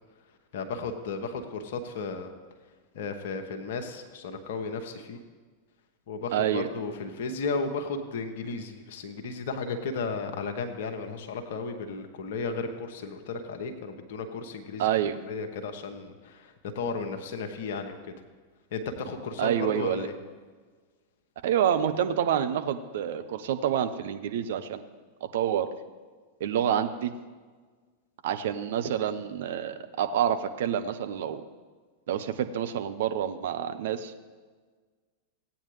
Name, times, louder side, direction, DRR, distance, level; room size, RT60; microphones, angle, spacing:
voice 1, 0.5-2.3 2.9-5.2 6.1-14.9 15.3-18.0 18.7-20.1, left 4 dB, 55° left, 5 dB, 1.1 m, -34 dB
voice 2, 6.3-6.7 14.8-15.2 19.4-20.1 21.4-24.8 25.3-25.7 26.4-27.1 28.2-31.4 32.1-34.1, right 9 dB, 55° right, 8 dB, 0.7 m, -27 dB
16.5 x 8.7 x 3.2 m, 1.5 s
figure-of-eight pair, 90°, 0 cm